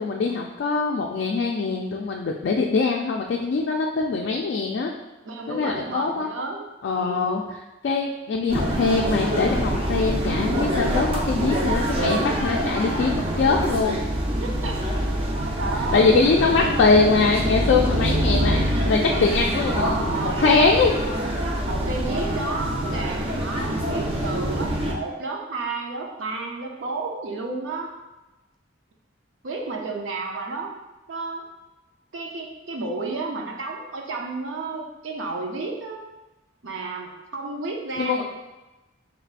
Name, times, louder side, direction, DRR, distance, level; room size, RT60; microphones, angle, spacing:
voice 1, 0.0-4.9 5.5-6.3 6.8-7.4 7.8-14.0 15.9-21.0 38.0-38.2, left 4 dB, 60° left, 0 dB, 0.3 m, -22 dB
voice 2, 5.2-6.6 7.0-7.4 14.4-14.9 15.2-16.2 16.6-16.7 19.6-20.5 21.6-27.9 29.4-30.7 31.1-31.4 32.1-36.0 36.6-38.2, right 3 dB, 80° right, 1 dB, 0.6 m, -31 dB
sound 1, 8.5-24.9, right 1 dB, 30° right, 0.6 m, -25 dB
4.6 x 3.2 x 2.4 m, 1.0 s
head